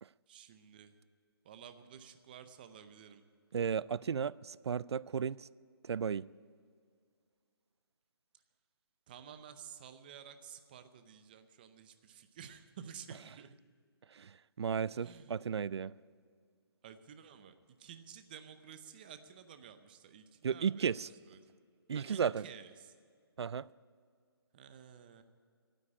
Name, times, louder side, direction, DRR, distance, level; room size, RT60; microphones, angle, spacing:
voice 1, 0.3-1.0 1.4-3.3 8.3-8.4 9.1-13.6 15.0-15.4 16.8-20.9 21.2-21.5 21.9-23.0 24.5-25.2, right 8 dB, 20° right, 0.6 m, -52 dB
voice 2, 3.5-5.5 5.8-6.2 14.1-15.9 20.4-21.1 21.9-22.4 23.4-23.7, right 7 dB, 90° right, 0.4 m, -34 dB
12.0 x 9.3 x 9.6 m
hypercardioid pair, 165°, 13 cm